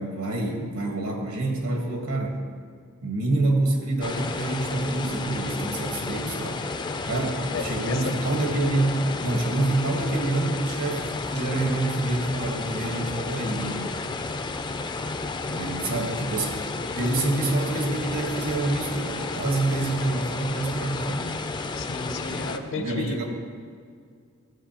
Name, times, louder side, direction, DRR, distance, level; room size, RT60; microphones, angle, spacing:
voice 1, 0.0-2.4 3.0-6.6 7.1-13.9 15.5-16.6 17.0-21.3 22.2-23.2, right 2 dB, 80° right, 1 dB, 1.4 m, -27 dB
sound 1, 4.0-22.6, left 3 dB, 20° left, 0.3 m, -32 dB
voice 2, 7.5-8.1 15.9-16.1 21.8-23.2, left 3 dB, 60° left, 7 dB, 0.7 m, -33 dB
12.5 x 7.9 x 2.9 m, 2.1 s
head